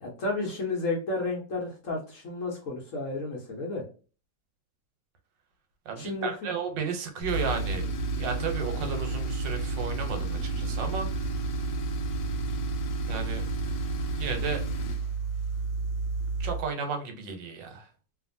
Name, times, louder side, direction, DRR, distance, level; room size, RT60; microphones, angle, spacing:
voice 1, 0.0-3.8 6.0-6.5, left 2 dB, 60° left, -1 dB, 0.9 m, -32 dB
voice 2, 5.9-7.9 8.2-11.3 13.1-13.4 14.2-14.6 16.4-17.9, right 5 dB, 85° right, 5 dB, 1.4 m, -33 dB
Tools, 7.2-16.7, right 3 dB, 85° left, 1.3 m, -31 dB
2.8 x 2.5 x 2.5 m, 0.36 s
omnidirectional pair, 1.9 m